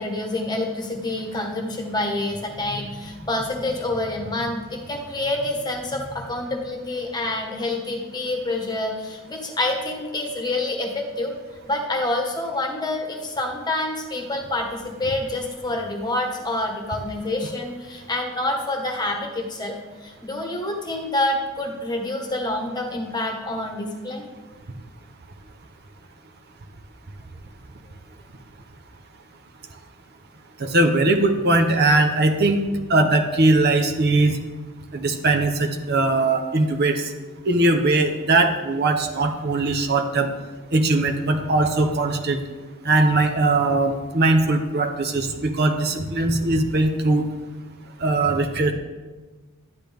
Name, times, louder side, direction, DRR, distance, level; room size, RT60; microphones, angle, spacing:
voice 1, 0.0-11.3 11.7-19.7 20.0-24.3, left 2 dB, 20° left, 2 dB, 1.3 m, -27 dB
voice 2, 30.6-34.4 34.9-37.1 37.5-40.3 40.7-42.4 42.8-47.2 48.0-48.7, right 2 dB, 50° right, 4 dB, 0.8 m, -20 dB
11.5 x 9.8 x 3.5 m, 1.3 s
head